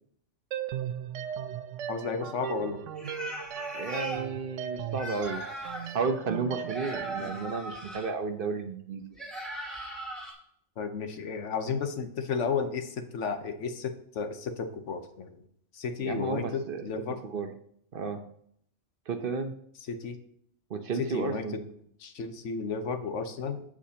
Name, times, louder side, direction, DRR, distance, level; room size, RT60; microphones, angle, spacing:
sound 1, 0.5-7.4, right 9 dB, 85° right, 0.9 m, -37 dB
voice 1, 1.9-2.8 7.2-7.3 10.8-15.4 15.7-17.2 19.9-20.2 20.9-21.6 22.0-23.6, left 5 dB, 75° left, 8 dB, 1.2 m, -33 dB
sound 2, 3.0-4.2 4.9-6.0 6.7-8.1 9.2-10.3, right 1 dB, ahead, 2.8 m, -38 dB
voice 2, 3.7-5.4 5.9-9.0 16.0-16.9 17.2-17.5 17.9-18.2 19.1-19.5 20.7-21.6, right 4 dB, 55° right, 7 dB, 0.8 m, -32 dB
15.0 x 5.1 x 2.8 m, 0.67 s
omnidirectional pair, 1.2 m